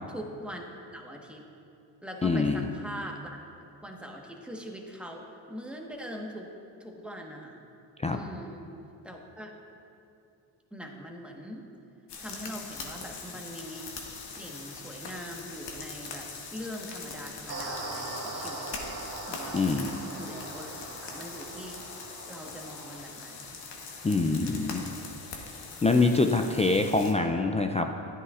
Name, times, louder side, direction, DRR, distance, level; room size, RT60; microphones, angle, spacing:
voice 1, 0.1-0.6 0.9-1.4 2.0-3.4 3.8-6.5 6.8-7.6 8.1-8.6 9.0-9.6 10.7-11.6 12.2-13.9 14.2-18.7 19.2-19.8 20.1-20.7 21.0-21.9 22.3-23.6 24.2-24.8 26.3-26.8, equal, ahead, 0 dB, 1.3 m, -42 dB
voice 2, 2.2-2.7 8.0-8.2 19.5-19.9 24.0-24.9 25.8-28.0, left 3 dB, 15° left, 4 dB, 0.4 m, -25 dB
sound 1, 12.1-27.1, left 4 dB, 55° left, 1.4 m, -42 dB
sound 2, 17.5-23.0, right 2 dB, 40° right, 1.8 m, -40 dB
11.5 x 9.2 x 2.5 m, 2.7 s
supercardioid pair, 60°, 49 cm